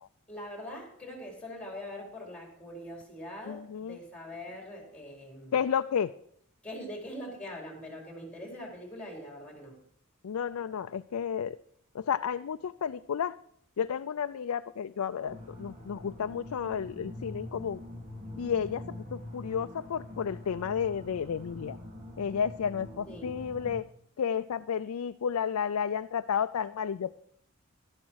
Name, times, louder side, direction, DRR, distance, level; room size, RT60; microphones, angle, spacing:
voice 1, 0.3-5.6 6.6-9.8 23.1-23.3, left 1 dB, 5° left, 0 dB, 4.4 m, -43 dB
voice 2, 3.5-4.0 5.5-6.1 10.2-11.6 11.9-13.4 13.8-17.8 18.4-18.8 19.1-21.8 22.2-23.8 24.2-27.1, left 7 dB, 80° left, 10 dB, 0.4 m, -32 dB
sound 1, 15.3-23.8, left 1 dB, 35° right, 2.3 m, -44 dB
12.5 x 11.5 x 4.7 m, 0.68 s
head